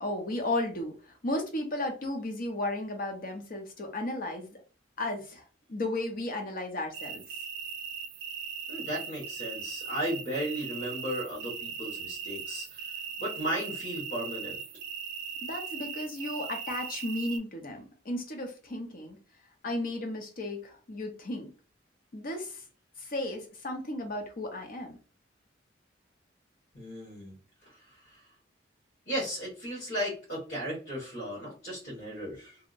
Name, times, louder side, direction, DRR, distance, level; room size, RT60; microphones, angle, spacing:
voice 1, 0.0-4.6 5.0-5.4 5.7-7.2 15.4-19.2 19.6-21.5 22.1-22.6 23.0-25.0, left 1 dB, 50° left, 0.7 m, -34 dB
sound 1, 6.9-17.4, right 7 dB, 60° right, 0.4 m, -39 dB
voice 2, 8.7-12.9 13.2-14.6 26.7-27.3 27.6-28.2 29.1-32.6, equal, 70° left, 1.5 m, -35 dB
2.7 x 2.0 x 2.5 m
head